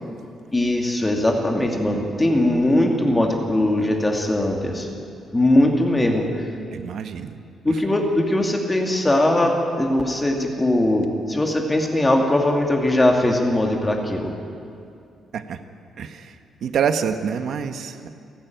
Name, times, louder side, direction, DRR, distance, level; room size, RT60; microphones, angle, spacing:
voice 1, 0.5-4.9 5.3-6.4 7.6-14.3, left 1 dB, 15° left, 2 dB, 2.3 m, -20 dB
voice 2, 6.7-7.4 15.3-15.6 16.0-16.3 16.6-18.1, right 7 dB, 60° right, 9 dB, 1.3 m, -26 dB
29.5 x 12.0 x 9.3 m, 2.4 s
cardioid pair, 160°, 0 cm